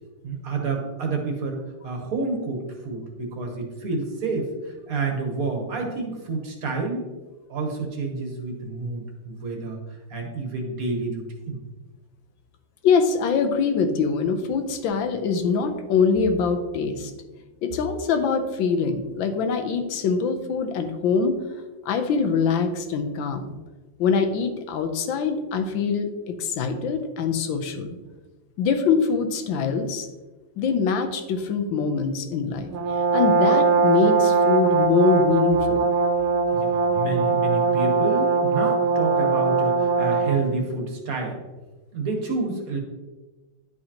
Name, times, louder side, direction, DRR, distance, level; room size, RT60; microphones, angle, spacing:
voice 1, 0.2-7.1 7.5-9.8 10.1-11.6 36.5-41.4 41.9-42.8, right 3 dB, 50° right, 2 dB, 1.3 m, -29 dB
voice 2, 12.8-17.1 17.6-21.4 21.9-23.5 24.0-26.1 26.4-27.9 28.6-30.1 30.6-32.7 33.1-35.8, left 5 dB, 70° left, 6 dB, 1.4 m, -23 dB
Brass instrument, 32.7-40.5, right 4 dB, 90° right, 1.6 m, -21 dB
10.5 x 4.8 x 2.9 m, 1.2 s
omnidirectional pair, 2.3 m